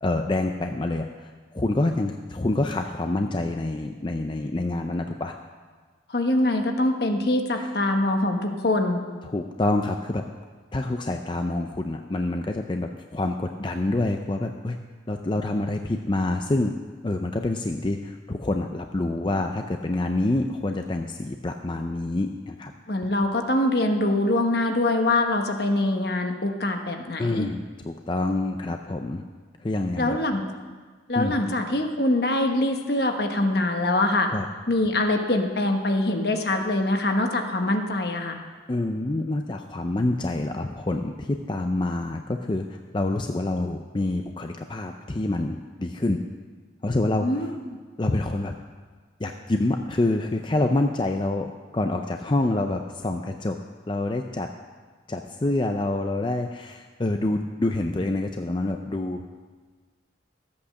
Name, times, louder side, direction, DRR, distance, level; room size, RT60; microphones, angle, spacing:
voice 1, 0.0-5.3 7.6-7.7 9.2-10.2 10.7-14.8 15.1-16.7 17.0-22.7 27.2-29.2 29.6-30.2 31.2-31.4 34.3-34.5 38.7-46.2 46.8-47.5 48.0-48.5 49.2-53.6 53.9-54.5 55.1-59.3, left 2 dB, 25° left, 5 dB, 0.5 m, -27 dB
voice 2, 6.1-9.0 22.9-27.5 28.6-28.7 30.0-30.4 31.1-34.3 34.7-38.4 47.2-47.5, left 1 dB, 55° left, 4 dB, 1.2 m, -24 dB
14.0 x 8.6 x 6.4 m, 1.5 s
head